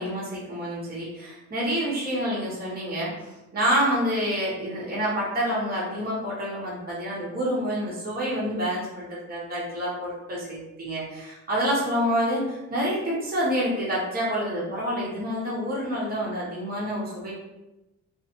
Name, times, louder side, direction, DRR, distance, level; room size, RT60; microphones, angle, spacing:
voice 1, 0.0-17.4, equal, 30° right, -7 dB, 1.2 m, -28 dB
2.7 x 2.4 x 2.8 m, 0.95 s
cardioid pair, 90°, 30 cm